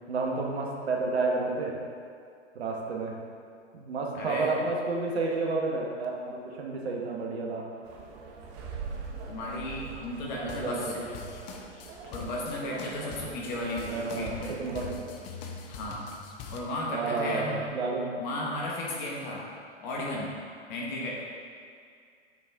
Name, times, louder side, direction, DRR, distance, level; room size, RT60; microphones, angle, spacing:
voice 1, 0.1-1.8 2.5-3.2 3.7-7.7 10.4-11.1 13.9-14.3 14.6-15.1 16.9-18.1, right 3 dB, 70° right, 0 dB, 1.2 m, -30 dB
voice 2, 4.1-4.5 9.3-11.0 12.1-14.6 15.7-16.0 16.5-17.6 18.2-19.5 19.8-20.3 20.7-21.2, left 1 dB, 45° left, -3 dB, 1.3 m, -34 dB
sound 1, 7.8-14.9, right 4 dB, 35° right, 0.8 m, -43 dB
sound 2, 10.4-16.6, left 3 dB, 20° left, 0.3 m, -43 dB
8.7 x 4.2 x 3.6 m, 2.3 s
hypercardioid pair, 115°, 34 cm